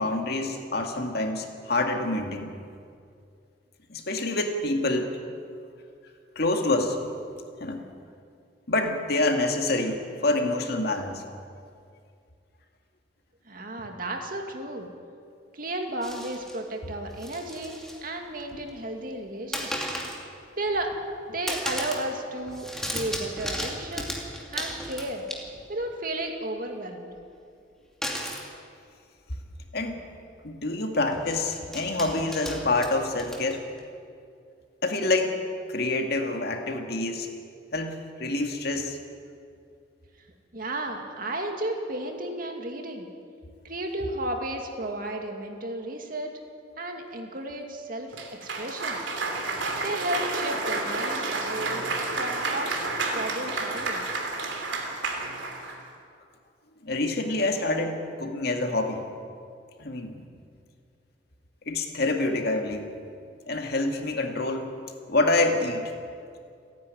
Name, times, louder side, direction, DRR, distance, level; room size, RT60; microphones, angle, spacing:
voice 1, 0.0-2.5 3.9-5.1 6.4-7.1 7.6-7.8 8.7-11.2 29.7-30.0 30.4-33.6 34.8-35.3 35.7-37.3 37.7-39.0 56.8-59.0 59.8-60.3 61.7-62.9 63.5-64.7 65.1-65.9, left 2 dB, 55° left, 3 dB, 2.1 m, -27 dB
voice 2, 13.5-14.9 15.5-20.0 20.6-20.9 21.3-24.2 24.5-25.2 25.7-27.1 40.5-43.1 43.6-46.3 46.8-48.1 48.4-49.0 49.8-51.9 52.1-54.0, right 1 dB, 45° right, 3 dB, 2.4 m, -33 dB
sound 1, 16.0-16.6 17.1-18.0 18.3-18.8 19.5-20.3 20.7-21.2 21.5-22.1 22.4-25.8 28.0-28.5 29.5-29.6 29.9-30.0 31.1-33.8, equal, 5° left, 2.5 m, -35 dB
Cheering / Applause, 48.1-55.8, right 3 dB, 70° right, 3.1 m, -30 dB
28.5 x 10.5 x 9.6 m, 2.3 s
head